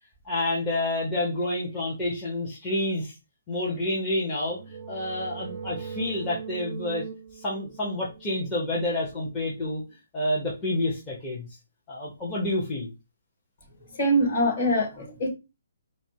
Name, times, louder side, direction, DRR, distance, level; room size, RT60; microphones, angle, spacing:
voice 1, 0.2-3.1 3.5-4.6 4.9-7.0 7.3-9.8 10.1-11.5 11.9-12.9, left 1 dB, 15° left, 0.9 m, -29 dB
sound 1, 4.1-9.7, right 6 dB, 25° right, 0.6 m, -41 dB
voice 2, 13.9-15.3, equal, 40° left, 2.6 m, -24 dB
4.3 x 2.1 x 4.4 m
hypercardioid pair, 170°, 0 cm